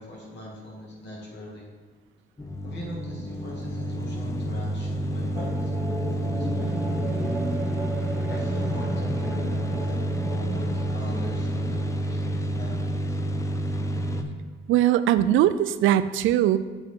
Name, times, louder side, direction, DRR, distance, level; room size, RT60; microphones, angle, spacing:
voice 1, 0.0-1.7 2.6-7.3 8.3-13.2, left 1 dB, 60° left, -2 dB, 2.3 m, -40 dB
sound 1, 2.4-14.2, equal, 15° left, 0.6 m, -29 dB
sound 2, 5.3-13.3, right 1 dB, 5° right, 1.2 m, -35 dB
voice 2, 14.7-16.6, right 12 dB, 80° right, 13 dB, 0.4 m, -20 dB
7.5 x 4.7 x 4.6 m, 1.4 s
cardioid pair, 90°, 20 cm